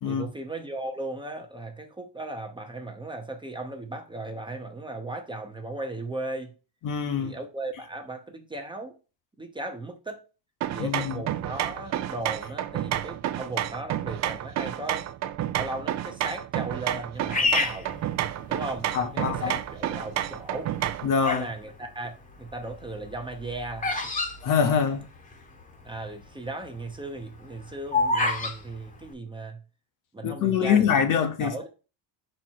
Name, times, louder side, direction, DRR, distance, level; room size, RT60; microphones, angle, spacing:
voice 1, 0.0-6.5 7.2-8.9 9.4-10.2 10.7-15.1 15.5-18.0 18.5-20.7 21.3-24.1 25.8-29.6 30.1-30.9 31.4-31.7, right 2 dB, 10° right, 0.8 m, -36 dB
voice 2, 6.8-7.3 10.8-11.2 18.9-19.6 21.0-21.5 24.4-25.1 30.2-31.7, left 7 dB, 45° left, 0.9 m, -24 dB
sound 1, 10.6-21.1, right 12 dB, 40° right, 0.5 m, -30 dB
Bird vocalization bird call bird song, 17.3-18.8 19.4-19.9 20.6-21.6 21.8-25.3 25.6-25.7 25.9-26.2 26.7-28.6, left 3 dB, 15° left, 1.1 m, -28 dB
5.3 x 4.4 x 4.6 m
cardioid pair, 135°, 44 cm